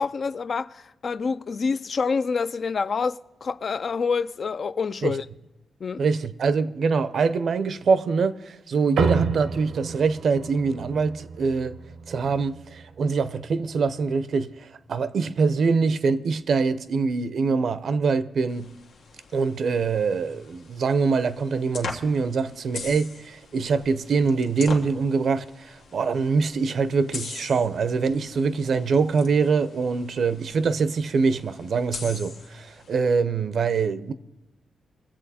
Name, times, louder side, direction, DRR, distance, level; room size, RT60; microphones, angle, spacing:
voice 1, 0.0-5.3 5.8-6.0, left 5 dB, 45° left, 0.3 m, -27 dB
voice 2, 6.0-11.8 12.1-18.7 19.3-34.1, right 5 dB, 60° right, 0.6 m, -24 dB
sound 1, 9.0-13.7, right 5 dB, 85° right, 0.8 m, -30 dB
sound 2, 18.5-33.0, left 4 dB, 90° left, 1.3 m, -42 dB
21.0 x 7.5 x 4.2 m
cardioid pair, 115°, 0 cm